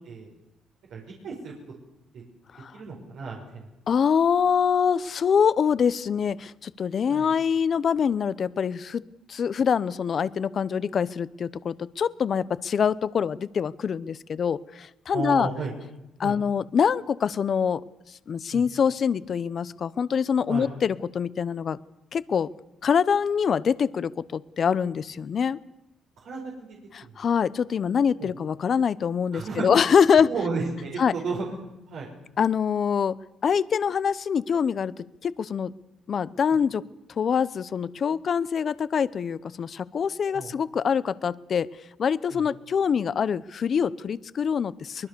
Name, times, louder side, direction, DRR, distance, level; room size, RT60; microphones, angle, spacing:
voice 1, 0.9-1.5 2.1-2.2 2.7-3.7 7.1-7.3 15.1-15.7 16.2-16.4 18.5-18.6 20.5-20.7 26.2-26.8 27.1-27.2 28.2-28.3 29.3-29.6 30.2-31.4 31.9-32.1 40.3-40.5 42.3-42.5, right 4 dB, 75° right, -2 dB, 5.3 m, -33 dB
voice 2, 3.9-9.0 9.3-15.5 16.2-17.8 18.3-21.8 22.1-22.5 22.8-25.6 26.9-30.3 31.0-31.1 32.4-33.2 33.4-35.7 36.1-36.8 37.2-41.7 42.0-45.1, left 7 dB, 50° left, 17 dB, 0.8 m, -24 dB
23.5 x 20.5 x 6.9 m, 0.94 s
cardioid pair, 90°, 0 cm